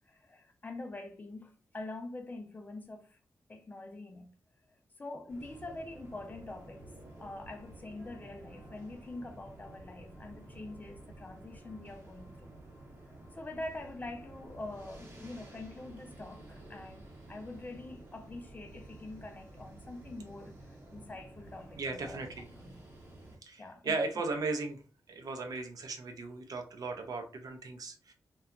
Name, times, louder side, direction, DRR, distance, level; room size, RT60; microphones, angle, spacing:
voice 1, 0.1-3.2 3.5-4.3 4.7-6.9 7.2-12.5 13.0-17.0 17.3-22.2 22.6-22.8 23.6-24.3, left 2 dB, 25° left, 0.4 m, -45 dB
sound 1, 5.3-23.4, right 2 dB, 35° right, 0.8 m, -51 dB
voice 2, 21.8-22.5 23.4-24.8 25.1-28.1, right 3 dB, 65° right, 0.5 m, -36 dB
2.8 x 2.2 x 2.4 m
wide cardioid pair, 170°, 7 cm